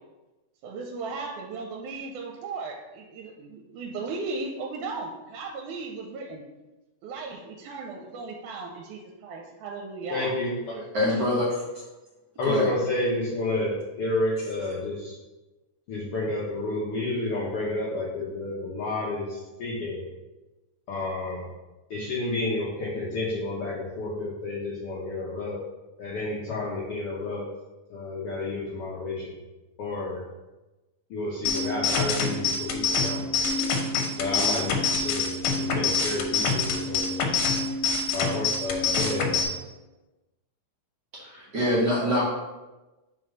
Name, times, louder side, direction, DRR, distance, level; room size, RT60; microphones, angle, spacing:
voice 1, 0.6-6.5 7.0-10.3 10.7-10.9, right 3 dB, 85° right, 1 dB, 2.1 m, -36 dB
voice 2, 10.1-10.5 12.4-15.2 15.9-20.0 20.9-21.5 21.9-25.6 26.0-27.4 27.9-29.3 29.8-30.2 31.1-33.6 34.2-37.2 38.1-39.5, left 2 dB, 65° left, -6 dB, 1.6 m, -30 dB
voice 3, 10.9-11.6 12.4-12.7 41.1-42.3, left 1 dB, 55° right, -6 dB, 1.2 m, -24 dB
sound 1, 31.4-39.4, left 4 dB, 85° left, 2.4 m, -26 dB
4.8 x 4.2 x 5.2 m, 1.1 s
omnidirectional pair, 3.5 m